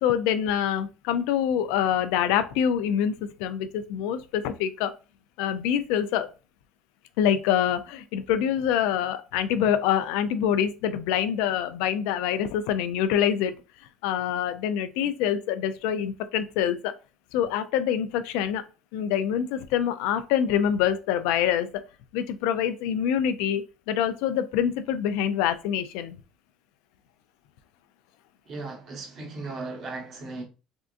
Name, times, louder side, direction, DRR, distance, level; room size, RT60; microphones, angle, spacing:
voice 1, 0.0-4.9 5.4-6.3 7.2-13.5 14.0-16.9 17.3-18.6 18.9-21.8 22.1-26.2, left 9 dB, 85° left, 0.3 m, -25 dB
voice 2, 28.5-30.4, right 3 dB, 50° right, 1.1 m, -36 dB
3.5 x 2.5 x 2.4 m
cardioid pair, 120°, 0 cm